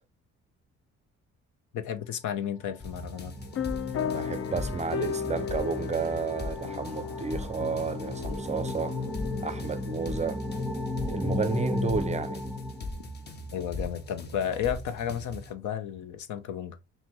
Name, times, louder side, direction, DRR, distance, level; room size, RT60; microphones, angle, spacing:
voice 1, 1.7-3.3 13.5-16.8, left 9 dB, 75° left, 0.7 m, -33 dB
sound 1, 2.7-13.5, left 2 dB, 10° left, 1.1 m, -35 dB
sound 2, 2.8-15.5, left 1 dB, 35° left, 0.8 m, -40 dB
sound 3, 3.6-11.7, left 7 dB, 50° left, 0.5 m, -36 dB
voice 2, 4.0-9.0 9.4-10.4 11.1-12.4, right 5 dB, 25° right, 0.4 m, -32 dB
5.6 x 2.2 x 3.0 m
cardioid pair, 90°, 30 cm